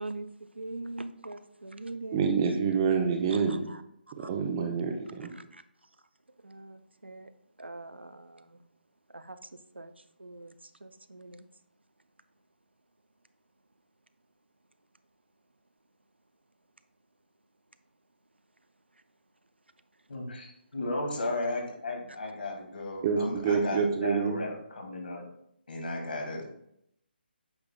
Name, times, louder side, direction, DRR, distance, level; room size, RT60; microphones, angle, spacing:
voice 1, 0.0-2.4 3.3-3.8 4.2-4.3 5.4-5.6 6.4-7.3 7.6-8.6 9.1-9.4 9.7-9.9 10.2-11.4, right 2 dB, 85° right, 11 dB, 0.5 m, -42 dB
voice 2, 2.1-3.6 4.2-5.3 23.0-24.4, right 6 dB, 25° right, 4 dB, 0.8 m, -27 dB
voice 3, 20.1-25.3 25.7-26.4, left 2 dB, 60° left, 1 dB, 2.0 m, -35 dB
8.7 x 5.8 x 2.2 m, 0.76 s
figure-of-eight pair, 145°, 6 cm